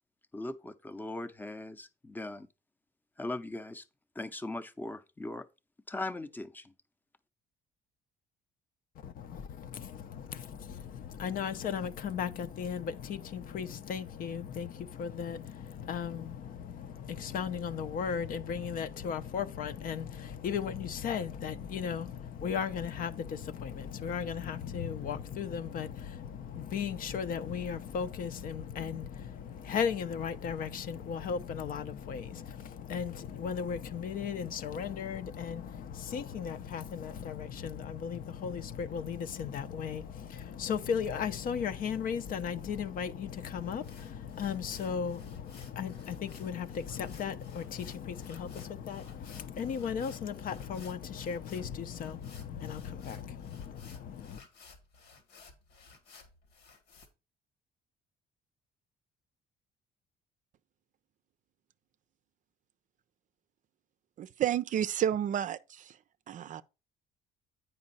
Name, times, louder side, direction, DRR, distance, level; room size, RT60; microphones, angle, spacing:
voice 1, 0.3-2.5 3.2-3.8 4.2-5.5 5.9-6.7, left 2 dB, 10° left, 0.7 m, -39 dB
voice 2, 9.0-54.4, left 7 dB, 55° left, 0.7 m, -36 dB
sound 1, 43.6-57.1, left 4 dB, 85° left, 2.1 m, -57 dB
voice 3, 64.2-66.0 66.3-66.6, right 10 dB, 50° right, 0.5 m, -31 dB
8.7 x 5.3 x 4.1 m
cardioid pair, 110°, 17 cm